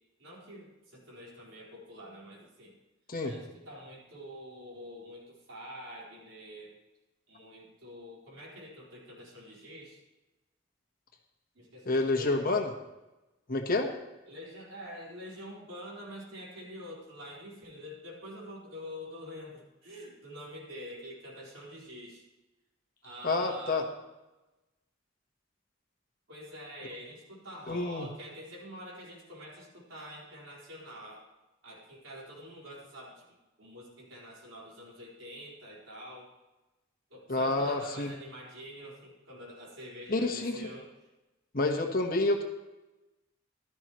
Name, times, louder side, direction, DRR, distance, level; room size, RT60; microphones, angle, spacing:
voice 1, 0.2-2.7 3.2-6.8 7.3-10.0 11.5-12.5 14.3-22.2 23.0-23.9 26.3-31.3 31.6-36.3 37.1-40.9, equal, 85° right, -4 dB, 4.3 m, -46 dB
voice 2, 11.9-12.7 13.5-13.9 23.2-23.8 27.7-28.1 37.3-38.1 40.1-40.7 41.5-42.4, left 2 dB, 45° left, 4 dB, 1.2 m, -28 dB
15.0 x 12.5 x 3.1 m, 1.1 s
head